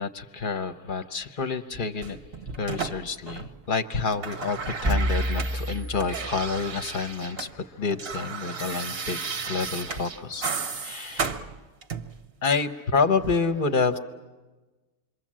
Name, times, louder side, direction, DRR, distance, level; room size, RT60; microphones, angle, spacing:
voice 1, 0.0-2.2 2.6-10.4 10.8-11.3 12.4-14.0, left 4 dB, 40° left, 9 dB, 0.8 m, -28 dB
sound 1, 2.0-3.7 4.0-7.5 7.8-12.2 13.2-13.4, right 5 dB, 45° right, 0.9 m, -34 dB
sound 2, 4.8-6.9, equal, 15° right, 0.8 m, -29 dB
27.5 x 23.5 x 7.5 m, 1.3 s
omnidirectional pair, 1.9 m